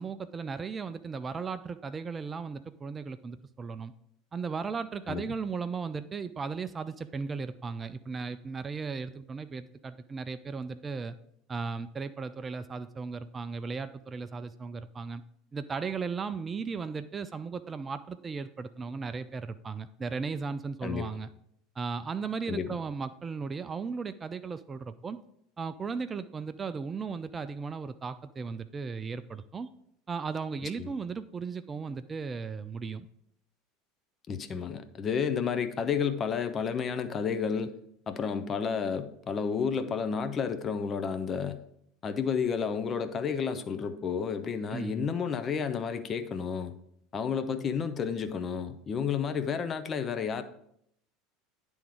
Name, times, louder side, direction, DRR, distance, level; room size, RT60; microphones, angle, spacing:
voice 1, 0.0-3.9 4.3-11.1 11.5-15.2 15.5-21.3 21.8-25.2 25.6-29.7 30.1-33.1 44.7-45.1, right 5 dB, 25° right, 13 dB, 0.3 m, -36 dB
voice 2, 34.3-37.7 38.1-41.6 42.0-46.7 47.1-50.4, left 6 dB, 35° left, 10 dB, 0.6 m, -31 dB
10.0 x 3.5 x 4.7 m, 0.73 s
figure-of-eight pair, 70°, 0 cm